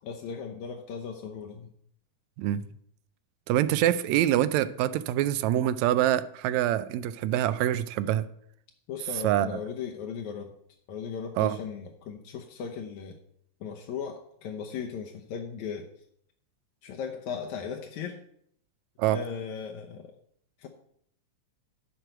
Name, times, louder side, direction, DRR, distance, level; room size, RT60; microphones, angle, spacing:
voice 1, 0.0-1.7 8.9-10.5 10.9-13.2 13.6-15.9 16.8-18.2 19.1-20.1 20.6-20.7, left 6 dB, 80° left, 2 dB, 2.2 m, -37 dB
voice 2, 3.5-8.3 9.2-9.6 11.4-11.6 19.0-19.2, right 12 dB, 80° right, 14 dB, 1.8 m, -25 dB
11.0 x 4.5 x 7.8 m, 0.69 s
omnidirectional pair, 3.4 m